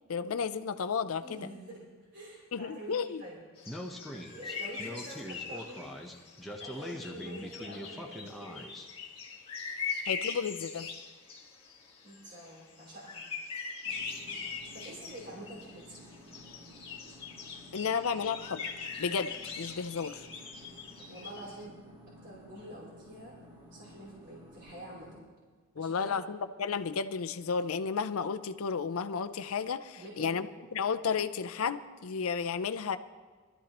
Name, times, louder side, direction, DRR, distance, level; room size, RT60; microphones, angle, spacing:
voice 1, 0.1-1.5 2.5-3.2 10.1-10.9 17.7-18.6 19.0-20.3 25.8-33.0, left 6 dB, 75° left, 11 dB, 0.5 m, -33 dB
voice 2, 1.2-1.8 2.1-3.4 4.1-5.9 6.5-8.7 12.0-13.2 14.7-16.0 21.1-21.8 22.2-23.3 23.7-25.1 25.8-26.2 30.0-30.4, right 1 dB, 55° right, -5 dB, 3.5 m, -47 dB
sound 1, 3.6-21.6, left 5 dB, 25° left, 1.6 m, -42 dB
Speech, 3.7-8.9, left 1 dB, ahead, 0.9 m, -42 dB
sound 2, 13.8-25.2, equal, 25° right, 2.6 m, -54 dB
21.0 x 13.0 x 3.0 m, 1.5 s
head